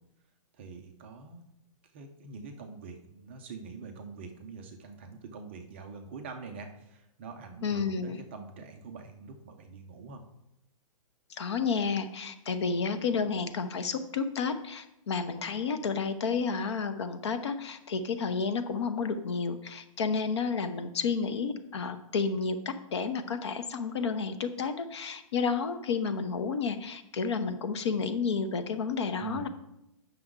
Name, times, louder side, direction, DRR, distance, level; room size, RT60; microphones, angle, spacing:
voice 1, 0.5-1.5 1.9-10.2 29.2-29.5, right 4 dB, 20° right, 4 dB, 0.4 m, -44 dB
voice 2, 7.6-8.2 11.3-29.5, left 5 dB, 50° left, 10 dB, 0.8 m, -31 dB
9.0 x 6.0 x 3.7 m, 0.83 s
hypercardioid pair, 180°, 18 cm